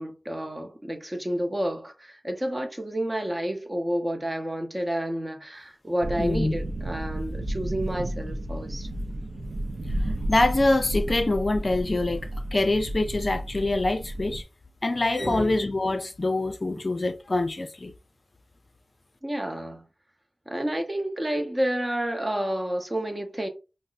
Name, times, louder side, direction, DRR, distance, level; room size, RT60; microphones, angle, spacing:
voice 1, 0.0-8.9 15.2-15.6 19.2-19.8 20.5-23.5, right 1 dB, 25° right, 0.8 m, -30 dB
sound 1, 6.0-14.4, right 1 dB, 75° right, 0.4 m, -32 dB
voice 2, 6.2-6.5 10.3-14.4 14.8-17.9, left 2 dB, 45° left, 0.5 m, -25 dB
5.2 x 2.0 x 2.4 m
wide cardioid pair, 70°, 0 cm